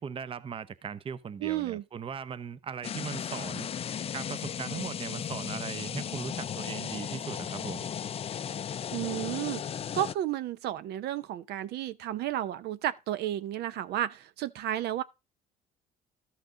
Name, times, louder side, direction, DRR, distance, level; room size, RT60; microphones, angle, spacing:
voice 1, 0.0-3.7 4.1-7.9, right 6 dB, 35° right, 0.7 m, -39 dB
voice 2, 1.4-1.8 8.9-9.6 9.9-15.0, right 12 dB, 75° right, 0.7 m, -32 dB
sound 1, 2.8-10.1, left 8 dB, 35° left, 0.4 m, -36 dB
13.0 x 6.0 x 3.8 m
cardioid pair, 110°, 17 cm